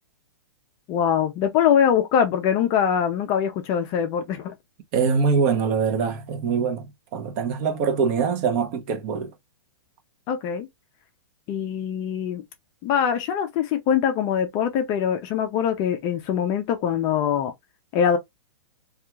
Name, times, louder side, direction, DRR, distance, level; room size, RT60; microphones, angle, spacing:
voice 1, 0.9-4.5 10.3-10.7 11.5-12.4 12.8-17.5 17.9-18.2, left 8 dB, 25° left, 0.4 m, -23 dB
voice 2, 4.9-6.9 7.1-9.3, right 5 dB, 35° right, 0.7 m, -23 dB
2.8 x 2.3 x 2.3 m
hypercardioid pair, 150°, 13 cm